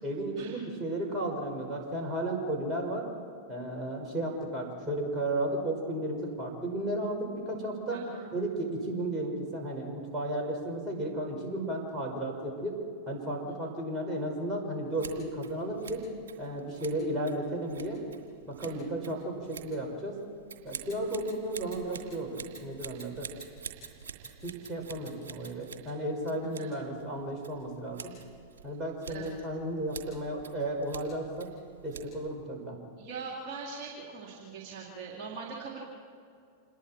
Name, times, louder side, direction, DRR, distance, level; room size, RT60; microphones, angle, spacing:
voice 1, 0.0-3.1 3.5-8.0 8.3-12.8 13.1-16.0 16.4-18.0 18.4-20.2 20.6-23.3 24.4-28.1 28.6-31.5 31.8-32.8, right 1 dB, 15° right, -1 dB, 5.6 m, -34 dB
voice 2, 7.9-8.3 13.4-13.6 18.6-18.8 26.6-26.7 29.1-29.3 33.0-35.8, right 5 dB, 40° right, -3 dB, 3.3 m, -42 dB
Scissors, 14.9-32.4, right 6 dB, 65° right, 2.7 m, -48 dB
27.5 x 21.0 x 4.5 m, 2.3 s
figure-of-eight pair, 90°, 0 cm